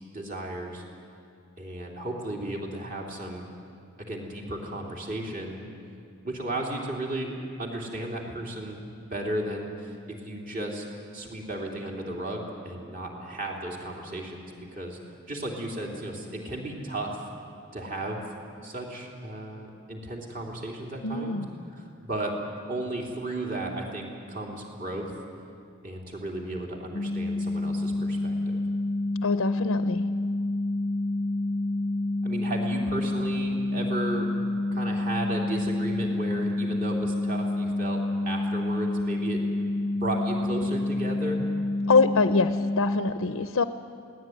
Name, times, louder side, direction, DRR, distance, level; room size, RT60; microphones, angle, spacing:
voice 1, 0.1-0.8 1.6-3.4 4.0-5.6 6.2-7.3 7.6-10.8 11.1-15.0 15.3-17.3 17.7-21.4 21.7-22.4 22.7-25.1 25.8-28.6 32.2-34.3 34.7-39.4 40.0-41.4, right 1 dB, 40° right, 0 dB, 3.4 m, -34 dB
voice 2, 21.0-21.5 29.2-30.1 41.9-43.6, left 4 dB, 90° left, 10 dB, 0.7 m, -24 dB
sound 1, 26.9-43.1, left 2 dB, 40° left, 0.6 m, -28 dB
23.0 x 18.0 x 9.4 m, 2.4 s
head